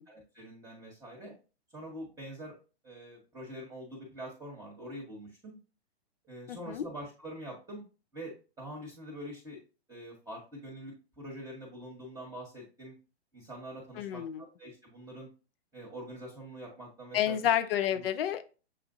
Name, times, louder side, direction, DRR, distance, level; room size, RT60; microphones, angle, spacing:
voice 1, 0.1-1.3 1.7-2.6 2.8-5.6 6.2-7.8 8.1-9.6 9.9-12.9 13.3-15.3 15.7-17.4 17.9-18.0, right 1 dB, 10° right, -3 dB, 1.3 m, -45 dB
voice 2, 6.5-6.9 14.0-14.4 17.1-18.6, left 10 dB, 55° left, 10 dB, 0.7 m, -30 dB
7.4 x 2.5 x 2.6 m, 0.34 s
hypercardioid pair, 130°, 34 cm